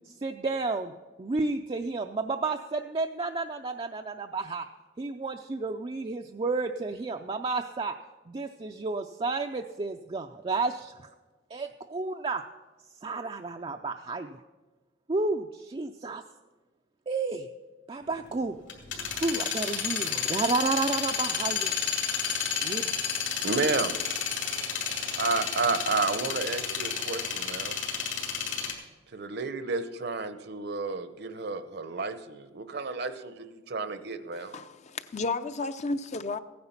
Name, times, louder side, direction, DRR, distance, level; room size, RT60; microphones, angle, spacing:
voice 1, 0.2-0.9 1.2-4.6 5.0-7.9 8.3-10.9 11.5-12.4 13.0-14.4 15.1-16.2 17.1-17.5 17.9-18.6 19.2-21.7 22.6-22.9, right 3 dB, 30° right, 0.4 m, -31 dB
sound 1, 18.4-28.7, left 6 dB, 70° left, 2.4 m, -31 dB
voice 2, 23.4-23.9 25.1-27.8 29.1-34.5, right 4 dB, 55° right, 0.8 m, -31 dB
voice 3, 34.3-36.4, left 3 dB, 35° left, 0.5 m, -33 dB
15.5 x 9.6 x 5.8 m
head